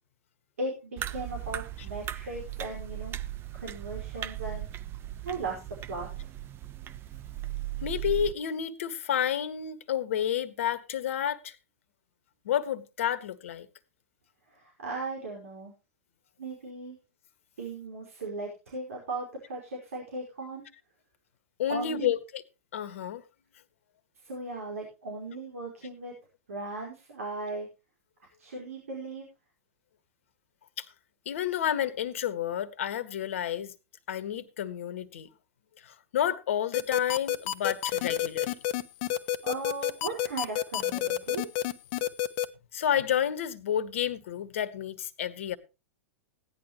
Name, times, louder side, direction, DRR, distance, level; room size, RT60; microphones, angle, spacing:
voice 1, 0.6-3.2 3.5-4.7 5.2-5.6 5.9-6.3 14.5-15.7 16.4-17.0 17.6-20.6 21.7-22.1 24.2-26.1 26.5-27.7 28.4-29.3 39.4-41.5, right 2 dB, 75° right, 5.0 m, -37 dB
sound 1, 1.0-8.3, right 14 dB, 30° right, 0.8 m, -38 dB
voice 2, 7.8-11.6 12.4-13.7 21.6-22.4 22.7-23.2 30.8-30.9 31.2-33.7 34.1-35.3 35.8-38.5 42.7-45.6, left 9 dB, 65° left, 1.5 m, -30 dB
sound 2, 36.7-42.5, left 12 dB, 50° left, 1.2 m, -28 dB
17.0 x 11.0 x 3.0 m
hypercardioid pair, 105°, 8 cm